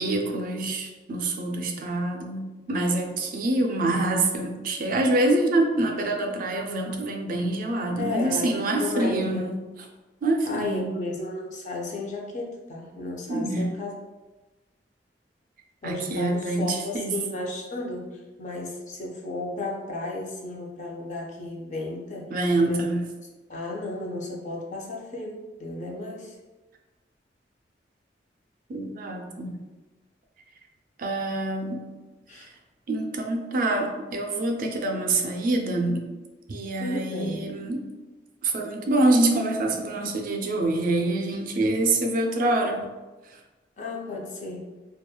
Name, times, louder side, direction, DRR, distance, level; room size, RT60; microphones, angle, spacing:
voice 1, 0.0-9.6 10.2-11.0 13.3-13.7 15.8-17.2 22.3-23.1 28.7-29.6 31.0-31.8 32.9-36.1 36.5-37.9 38.4-42.9 43.3-43.4, right 2 dB, 50° right, 3 dB, 0.3 m, -26 dB
voice 2, 8.0-9.5 10.4-14.0 15.8-22.3 22.6-22.8 23.5-26.4 32.3-32.5 36.8-37.5 43.8-44.7, left 2 dB, 45° left, -1 dB, 0.5 m, -33 dB
2.9 x 2.2 x 2.2 m, 1.2 s
head